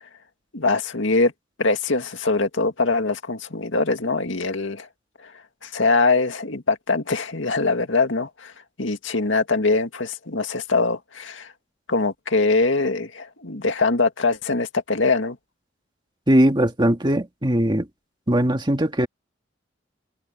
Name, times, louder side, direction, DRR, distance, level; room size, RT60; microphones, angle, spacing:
voice 1, 0.5-1.3 1.6-4.9 5.6-8.5 8.8-11.5 11.9-15.4, left 3 dB, 75° left, 2.1 m, -22 dB
voice 2, 16.3-17.9 18.3-19.1, right 1 dB, 25° right, 2.0 m, -19 dB
head